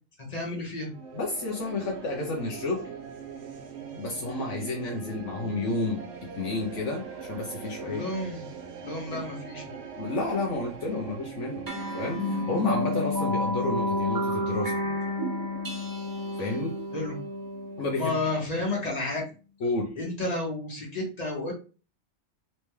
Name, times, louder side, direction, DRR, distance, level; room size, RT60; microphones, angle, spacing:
voice 1, 0.3-0.9 7.8-8.5 8.8-9.8 16.9-17.2 17.9-19.2 20.0-21.5, left 2 dB, 30° left, 1.8 m, -31 dB
sound 1, 0.9-19.1, right 7 dB, 60° right, 0.9 m, -42 dB
voice 2, 1.1-2.9 3.9-8.0 9.1-9.2 10.0-11.7 11.9-15.0 16.4-16.8 17.8-18.2 19.6-20.0, left 3 dB, 70° left, 1.2 m, -31 dB
sound 2, 11.6-18.5, left 1 dB, 20° right, 0.6 m, -30 dB
4.2 x 3.3 x 3.2 m
omnidirectional pair, 1.3 m